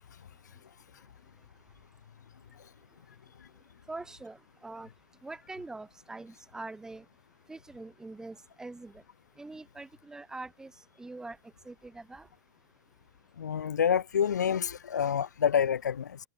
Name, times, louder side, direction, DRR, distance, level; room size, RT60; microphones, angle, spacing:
voice 1, 3.9-4.9 5.2-7.0 7.5-8.9 9.4-10.7 11.0-11.4 11.6-12.3, right 2 dB, 5° right, 4.9 m, -43 dB
voice 2, 13.4-16.2, left 8 dB, 85° left, 0.7 m, -27 dB
hypercardioid pair, 130°, 9 cm